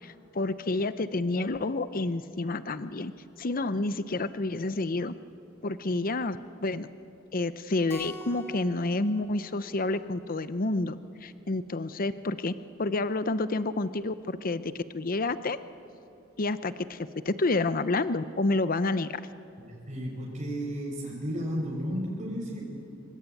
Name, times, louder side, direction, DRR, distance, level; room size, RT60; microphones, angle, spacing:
voice 1, 0.0-3.1 3.4-5.1 5.6-6.9 7.3-12.5 12.8-15.6 16.4-19.2, left 2 dB, 45° left, 13 dB, 0.7 m, -29 dB
Keyboard (musical), 7.9-10.5, equal, 10° left, 1.6 m, -45 dB
voice 2, 19.6-22.6, equal, 40° right, -3 dB, 5.3 m, -33 dB
26.5 x 23.5 x 9.2 m, 2.7 s
head